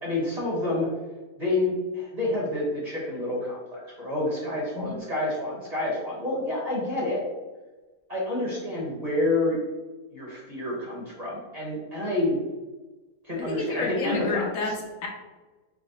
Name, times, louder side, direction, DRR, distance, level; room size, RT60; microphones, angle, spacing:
voice 1, 0.0-0.9 1.4-7.2 8.1-9.6 10.1-12.4 13.2-14.5, left 2 dB, 30° right, -5 dB, 0.9 m, -28 dB
voice 2, 13.4-15.1, left 4 dB, 70° left, 1 dB, 0.9 m, -30 dB
4.6 x 2.0 x 4.0 m, 1.2 s
omnidirectional pair, 1.6 m